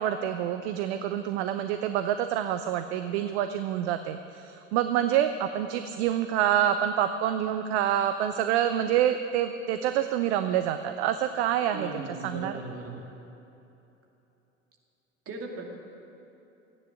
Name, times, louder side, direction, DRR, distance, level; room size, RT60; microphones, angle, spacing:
voice 1, 0.0-12.5, right 10 dB, 55° right, 9 dB, 0.7 m, -27 dB
voice 2, 11.7-13.0 15.3-15.7, right 2 dB, 35° right, 0 dB, 2.6 m, -38 dB
15.0 x 9.7 x 7.5 m, 2.9 s
figure-of-eight pair, 75°, 40 cm